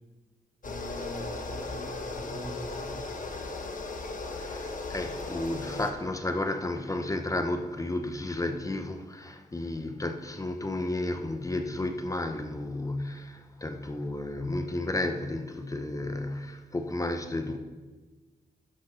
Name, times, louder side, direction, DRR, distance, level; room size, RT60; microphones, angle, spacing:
sound 1, 0.6-5.9, left 3 dB, 55° left, 1.2 m, -36 dB
voice 1, 0.6-3.2, right 1 dB, 70° right, 3.3 m, -43 dB
voice 2, 4.3-17.6, left 2 dB, 20° left, 0.7 m, -32 dB
12.0 x 6.3 x 5.6 m
wide cardioid pair, 130°, 16 cm